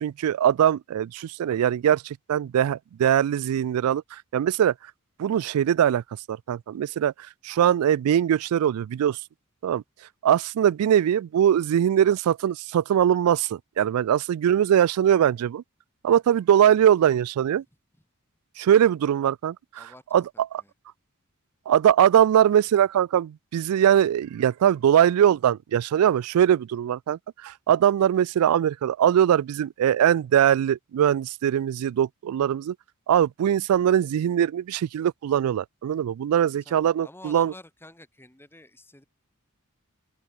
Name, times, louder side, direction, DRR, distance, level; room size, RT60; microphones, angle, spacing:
voice 1, 0.0-4.7 5.2-6.0 6.3-7.1 7.4-9.2 9.6-9.8 10.2-15.6 16.0-17.6 18.6-19.8 20.1-20.2 20.5-20.6 21.7-32.7 33.1-37.5, right 9 dB, 90° right, 0.3 m, -21 dB
voice 2, 19.8-20.7 36.6-39.0, left 1 dB, 10° left, 7.6 m, -49 dB
open air
head